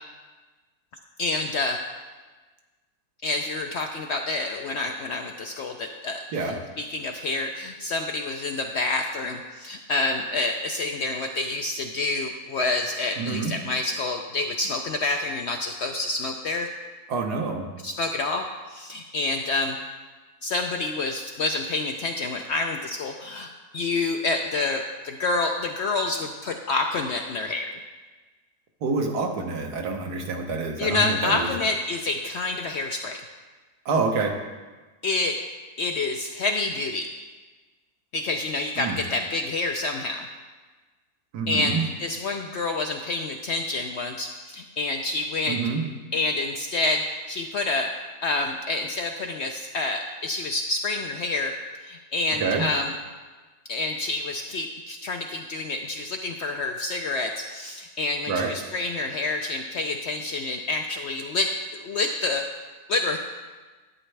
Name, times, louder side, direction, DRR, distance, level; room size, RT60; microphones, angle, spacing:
voice 1, 1.2-1.8 3.2-16.7 17.8-19.8 20.4-27.7 30.8-33.2 35.0-35.4 35.8-37.1 38.1-40.3 41.5-45.6 46.1-47.9 48.2-51.5 51.8-52.9 53.7-62.4 62.9-63.2, left 3 dB, 65° left, 4 dB, 0.6 m, -28 dB
voice 2, 13.2-13.5 17.1-17.7 28.8-31.5 33.8-34.3 38.8-39.0 41.3-41.8 45.5-45.8 52.4-52.7 58.3-58.5, right 4 dB, 80° right, 3 dB, 1.5 m, -27 dB
11.5 x 8.8 x 3.3 m, 1.3 s
omnidirectional pair, 1.6 m